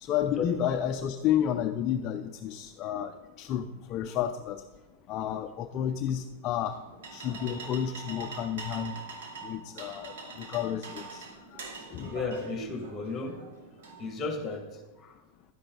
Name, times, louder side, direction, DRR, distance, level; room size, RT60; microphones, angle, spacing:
voice 1, 0.0-3.1 3.4-4.6 5.1-6.8 7.1-9.0 9.4-11.2 11.9-12.1, left 10 dB, 30° left, 6 dB, 0.5 m, -31 dB
sound 1, 6.6-14.6, right 4 dB, 80° right, 2.4 m, -44 dB
voice 2, 12.1-13.4 14.0-15.2, left 4 dB, 15° left, 3 dB, 2.0 m, -34 dB
11.5 x 10.5 x 3.9 m, 1.1 s
supercardioid pair, 160°, 0 cm